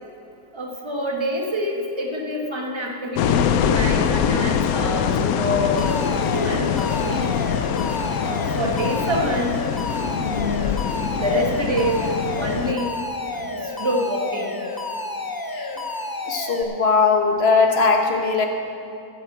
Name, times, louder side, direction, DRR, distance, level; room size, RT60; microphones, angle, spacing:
voice 1, 0.5-7.4 8.2-9.6 10.2-10.8 11.2-12.9 13.3-14.6, equal, 20° right, 0 dB, 1.4 m, -26 dB
sound 1, 3.2-12.7, left 8 dB, 80° left, 1.0 m, -23 dB
Alarm, 5.8-16.6, left 2 dB, 30° left, 0.4 m, -31 dB
voice 2, 16.3-18.5, left 4 dB, 45° left, 3 dB, 1.4 m, -19 dB
12.0 x 7.9 x 7.8 m, 2.7 s
omnidirectional pair, 1.5 m